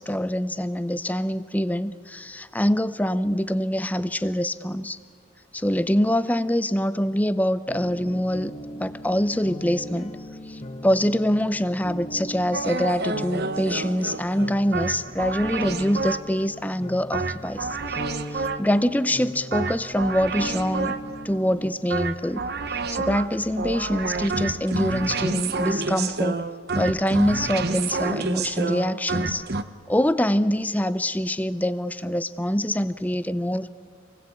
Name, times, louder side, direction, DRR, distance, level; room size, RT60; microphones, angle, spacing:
voice 1, 0.0-5.0 5.5-8.5 8.8-10.1 10.5-18.0 18.3-20.9 21.2-22.4 22.9-26.4 26.7-29.4 29.9-33.7, equal, 10° left, 13 dB, 0.6 m, -24 dB
sound 1, 7.7-21.7, equal, 30° left, 1.7 m, -39 dB
sound 2, 12.5-16.5 17.1-18.9 19.5-21.2 21.9-29.6, right 3 dB, 50° right, 1.0 m, -29 dB
27.0 x 19.5 x 8.5 m, 2.2 s
head